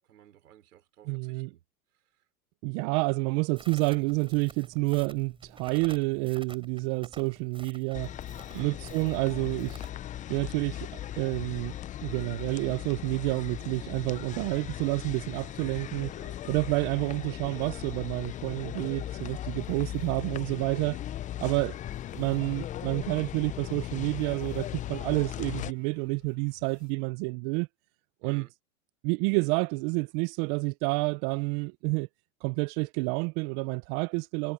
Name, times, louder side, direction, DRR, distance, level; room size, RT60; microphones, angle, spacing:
voice 1, 0.0-1.6 1.9-2.3 8.5-8.8 16.1-16.4 28.2-28.5, right 11 dB, 85° right, 5.4 m, -55 dB
voice 2, 1.1-1.5 2.6-8.1 8.6-9.8 10.3-11.7 12.0-16.1 16.5-21.0 21.4-21.8 22.1-27.7 28.2-28.4 29.0-32.1 32.4-34.5, right 28 dB, 50° right, 0.7 m, -29 dB
Crackle, 3.6-9.9, right 3 dB, 10° right, 5.8 m, -51 dB
sound 1, 7.9-25.7, left 12 dB, 20° left, 0.4 m, -38 dB
sound 2, 17.9-26.9, left 10 dB, 85° left, 4.0 m, -57 dB
hypercardioid pair, 110°, 45 cm